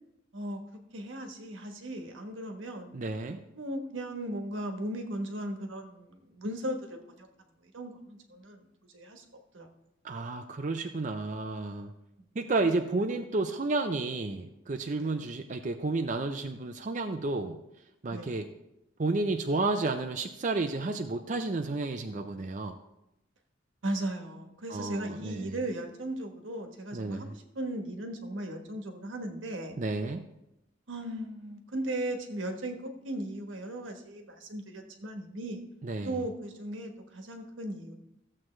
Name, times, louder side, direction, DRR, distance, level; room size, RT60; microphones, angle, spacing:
voice 1, 0.9-2.9 3.5-6.8 7.2-7.3 7.7-8.7 8.9-9.2 9.5-9.7 15.0-15.2 18.1-18.4 23.8-29.8 30.9-35.6 36.0-37.9, right 1 dB, 85° right, 4 dB, 1.3 m, -37 dB
voice 2, 2.9-3.4 10.0-11.9 12.4-17.6 18.0-18.5 19.0-22.8 24.7-25.6 26.9-27.3 29.8-30.2 35.8-36.2, right 3 dB, 40° right, 6 dB, 0.5 m, -31 dB
14.5 x 7.5 x 3.2 m, 0.87 s
head